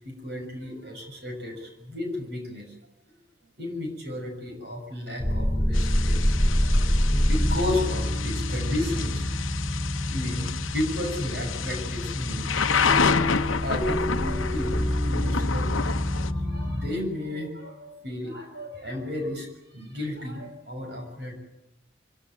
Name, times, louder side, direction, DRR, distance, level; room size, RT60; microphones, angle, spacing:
voice 1, 0.0-2.7 3.6-9.2 10.1-16.0 16.4-19.5 19.7-21.3, left 1 dB, 55° right, 3 dB, 6.9 m, -33 dB
sound 1, 5.2-16.9, equal, 5° left, 3.7 m, -26 dB
Thunder / Rain, 5.7-16.3, left 6 dB, 85° left, 0.9 m, -30 dB
24.5 x 18.0 x 9.2 m, 0.88 s
head